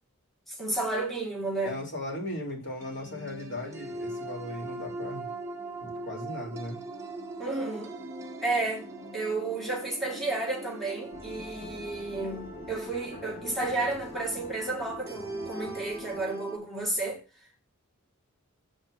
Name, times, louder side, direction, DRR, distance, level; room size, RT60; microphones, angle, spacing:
voice 1, 0.5-1.8 7.4-7.9 8.4-8.9 9.1-17.2, right 2 dB, ahead, 1.8 m, -32 dB
voice 2, 1.6-5.2 5.8-6.8, left 1 dB, 60° left, 3.2 m, -37 dB
sound 1, 2.8-16.6, right 2 dB, 15° right, 1.2 m, -41 dB
sound 2, 11.1-16.2, left 2 dB, 40° left, 1.9 m, -46 dB
7.5 x 4.3 x 6.5 m
head